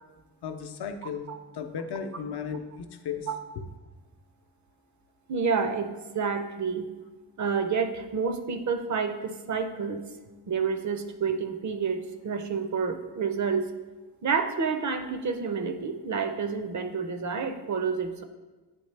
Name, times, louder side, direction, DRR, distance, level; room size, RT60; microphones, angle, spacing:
voice 1, 0.4-1.3 1.5-3.3, left 6 dB, 70° left, 6 dB, 0.6 m, -35 dB
voice 2, 5.3-6.9 7.4-10.0 10.5-13.7 14.2-18.2, right 5 dB, 45° right, 8 dB, 0.5 m, -29 dB
9.2 x 3.3 x 3.2 m, 1.2 s
wide cardioid pair, 155°, 41 cm